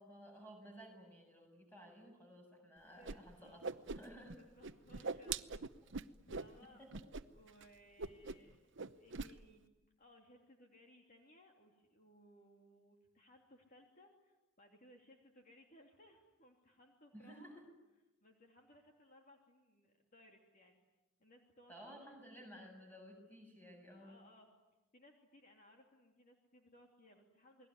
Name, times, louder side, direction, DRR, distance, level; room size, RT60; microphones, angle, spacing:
voice 1, 0.0-4.4 5.0-5.1 5.8-5.9 6.8-6.9 17.1-17.7 21.7-24.2, equal, 10° left, 3 dB, 7.2 m, -56 dB
voice 2, 2.9-3.6 4.4-9.6 10.0-17.6 18.2-20.8 21.2-22.2 24.0-24.5 24.9-27.7, left 1 dB, 40° left, 1 dB, 3.0 m, -64 dB
Whoosh swoosh swish, 3.0-3.2 3.4-4.4 4.6-6.5 6.9-7.2 7.5-7.6 8.0-8.5 8.8-9.3, right 4 dB, 60° right, 0.9 m, -42 dB
29.0 x 21.0 x 9.7 m, 1.0 s
head